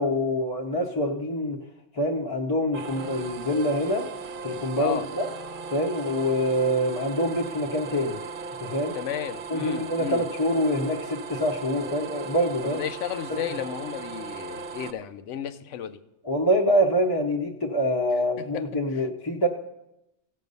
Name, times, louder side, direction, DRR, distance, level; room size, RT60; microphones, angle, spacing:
voice 1, 0.0-1.6 2.0-4.0 4.4-5.3 5.7-8.2 8.6-8.9 9.5-12.8 13.3-13.4 16.2-19.5, equal, 25° left, -1 dB, 0.7 m, -25 dB
sound 1, 2.7-14.9, right 4 dB, 55° right, 0.7 m, -37 dB
voice 2, 8.9-10.2 12.6-16.0 18.4-19.0, left 9 dB, 90° left, 12 dB, 1.0 m, -33 dB
16.0 x 6.5 x 5.4 m, 0.89 s
omnidirectional pair, 1.2 m